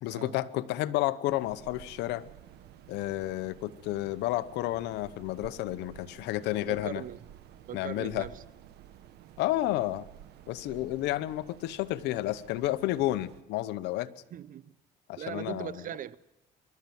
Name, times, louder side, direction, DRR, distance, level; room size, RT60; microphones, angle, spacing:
voice 1, 0.0-2.2 2.9-7.0 7.7-8.3 9.4-10.0 10.5-14.1 15.1-15.7, left 15 dB, 90° left, 0.9 m, -31 dB
sound 1, 1.2-13.4, right 11 dB, 75° right, 1.4 m, -52 dB
voice 2, 6.5-7.2 7.7-8.4 9.6-9.8 14.3-14.7 15.2-16.2, right 10 dB, 55° right, 0.8 m, -40 dB
25.0 x 12.0 x 9.3 m
cardioid pair, 110°, 17 cm